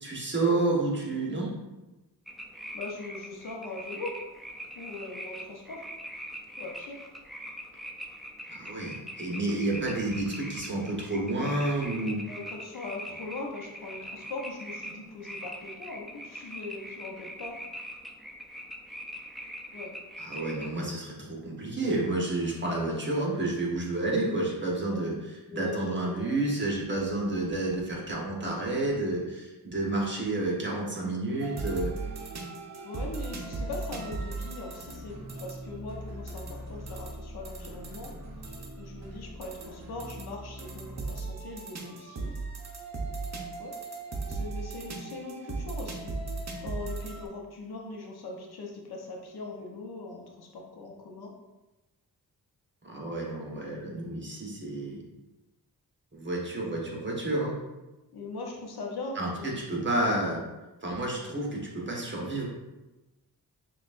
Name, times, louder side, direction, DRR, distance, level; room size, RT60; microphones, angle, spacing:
voice 1, 0.0-1.5 8.5-12.3 20.2-31.9 52.8-55.0 56.1-57.6 59.1-60.4 60.8-62.4, right 2 dB, 30° right, -3 dB, 1.1 m, -30 dB
sound 1, 2.3-20.8, equal, ahead, 0.4 m, -42 dB
voice 2, 2.7-4.2 4.7-5.9 6.6-7.0 11.9-17.6 19.7-20.0 24.9-25.0 25.4-26.4 32.8-38.1 38.8-42.3 43.6-43.7 44.3-46.1 46.6-51.3 58.1-59.9, left 3 dB, 75° left, 0 dB, 0.8 m, -40 dB
sound 2, 31.4-47.3, right 3 dB, 45° right, 0.7 m, -38 dB
6.1 x 2.4 x 2.5 m, 1.1 s
cardioid pair, 80°, 38 cm